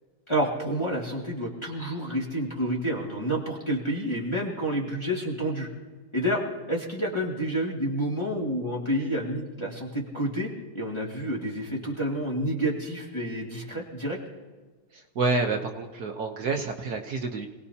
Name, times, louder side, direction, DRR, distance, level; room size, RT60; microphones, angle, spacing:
voice 1, 0.3-5.7 6.1-14.2, equal, 15° left, -4 dB, 2.1 m, -29 dB
voice 2, 14.9-17.5, right 3 dB, 60° right, 3 dB, 1.4 m, -28 dB
27.0 x 18.5 x 2.8 m, 1.4 s
omnidirectional pair, 2.0 m